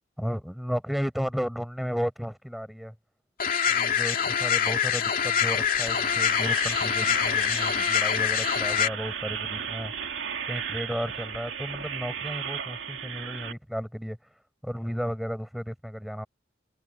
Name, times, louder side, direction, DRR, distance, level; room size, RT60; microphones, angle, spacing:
voice 1, 0.2-2.9 3.7-9.9 10.4-14.2 14.6-16.3, equal, ahead, 6.6 m, -33 dB
sound 1, 3.4-8.9, left 8 dB, 50° left, 2.6 m, -25 dB
sound 2, 5.5-13.5, right 7 dB, 80° right, 2.4 m, -35 dB
head